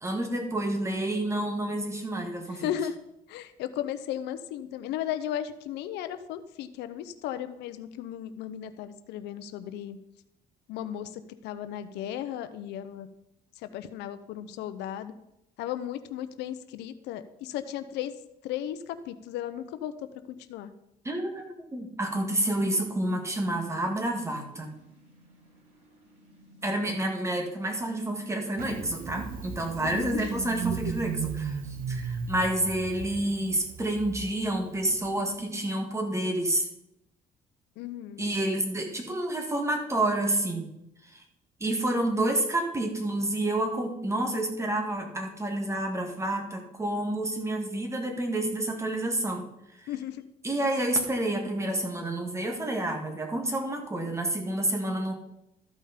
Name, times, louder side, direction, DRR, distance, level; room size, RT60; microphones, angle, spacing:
voice 1, 0.0-2.7 21.0-24.7 26.6-36.7 38.2-40.7 41.0-41.2 41.6-49.5 49.8-49.9 50.4-55.1, right 1 dB, 15° right, 3 dB, 1.8 m, -29 dB
voice 2, 2.5-2.9 3.3-10.0 10.7-13.1 13.6-15.1 15.6-18.1 18.4-19.9 20.3-20.7 29.8-30.3 37.8-38.3 49.9-50.2, left 11 dB, 85° left, 11 dB, 0.7 m, -35 dB
sound 1, 24.3-35.7, equal, 85° right, 4.7 m, -56 dB
Engine starting, 28.6-35.1, right 6 dB, 60° right, 1.4 m, -36 dB
13.5 x 5.5 x 5.1 m, 0.85 s
cardioid pair, 110°, 17 cm